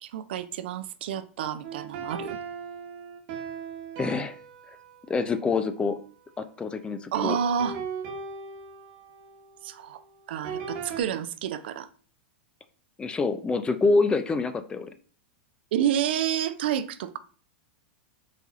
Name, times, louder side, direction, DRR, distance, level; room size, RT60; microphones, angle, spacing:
voice 1, 0.0-2.4 7.1-7.8 9.6-10.0 10.3-11.9 15.7-17.2, right 9 dB, 70° right, 12 dB, 0.4 m, -29 dB
sound 1, 1.6-6.5 7.1-11.0, right 5 dB, 50° right, 1.1 m, -39 dB
voice 2, 4.0-4.4 5.1-6.0 6.4-7.4 13.0-14.9, left 3 dB, 15° left, 11 dB, 0.4 m, -26 dB
4.0 x 4.0 x 2.4 m, 0.40 s
hypercardioid pair, 110°, 6 cm